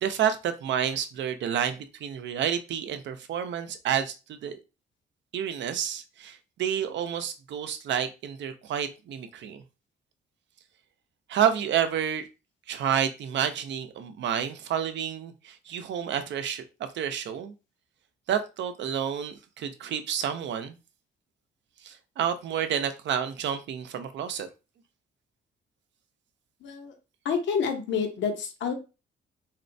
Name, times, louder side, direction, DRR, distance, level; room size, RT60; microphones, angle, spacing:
voice 1, 0.0-4.6 5.3-9.6 11.3-12.3 12.7-17.5 18.3-20.8 21.8-24.5, right 9 dB, 65° right, 0.6 m, -29 dB
voice 2, 26.6-26.9 27.2-28.7, left 6 dB, 70° left, 0.8 m, -28 dB
4.2 x 2.1 x 2.6 m
cardioid pair, 90°, 20 cm